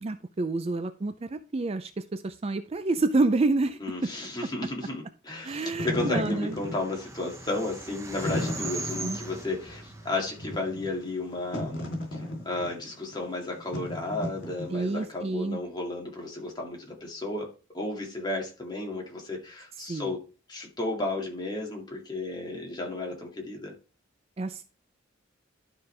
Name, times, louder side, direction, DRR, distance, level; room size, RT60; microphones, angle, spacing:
voice 1, 0.0-4.3 5.4-6.6 9.0-9.2 14.7-15.6 19.8-20.1 24.4-24.6, right 3 dB, 30° right, 10 dB, 0.4 m, -28 dB
voice 2, 3.8-17.5 17.7-20.2 20.5-23.7, left 2 dB, 20° left, 0 dB, 2.3 m, -33 dB
Wind / Fire, 5.5-15.1, left 1 dB, 65° left, 3.4 m, -36 dB
sound 1, 6.0-11.4, right 2 dB, 15° right, 0.8 m, -40 dB
12.0 x 5.2 x 3.3 m, 0.34 s
head